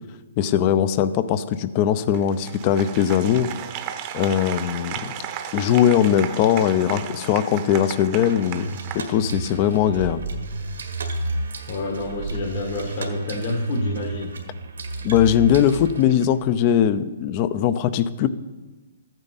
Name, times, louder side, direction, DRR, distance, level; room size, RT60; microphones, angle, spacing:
voice 1, 0.4-3.5 4.1-4.9 5.5-8.7 8.9-10.2 15.0-18.3, left 9 dB, 35° left, 14 dB, 0.5 m, -20 dB
Applause, 2.1-9.7, right 9 dB, 30° right, 0.8 m, -35 dB
sound 1, 8.3-16.3, right 3 dB, 80° right, 1.6 m, -31 dB
voice 2, 11.7-14.3, left 2 dB, 50° left, -1 dB, 1.5 m, -28 dB
14.0 x 9.0 x 4.1 m, 1.2 s
hypercardioid pair, 150°, 0 cm